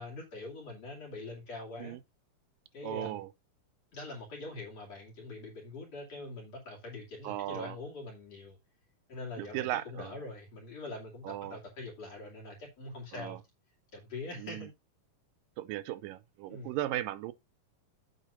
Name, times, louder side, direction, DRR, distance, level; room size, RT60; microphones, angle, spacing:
voice 1, 0.0-2.0 2.7-3.2 3.9-8.6 9.1-13.4 13.9-14.7 16.5-16.7, left 2 dB, 50° left, 3.2 m, -43 dB
voice 2, 2.8-3.3 7.2-7.8 9.4-10.2 11.2-11.6 13.1-13.4 14.4-14.7 15.6-17.3, right 14 dB, 85° right, 2.3 m, -37 dB
8.3 x 4.1 x 5.4 m
omnidirectional pair, 4.0 m